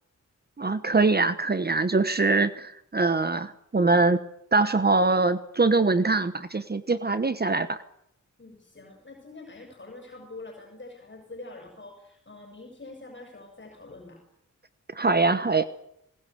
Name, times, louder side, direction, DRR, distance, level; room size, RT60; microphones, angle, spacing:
voice 1, 0.6-4.2 4.5-7.8 14.9-15.6, right 3 dB, 30° right, 12 dB, 1.1 m, -23 dB
voice 2, 8.4-14.2, left 2 dB, 35° left, 1 dB, 6.6 m, -45 dB
21.0 x 20.0 x 8.2 m, 0.75 s
wide cardioid pair, 115°, 31 cm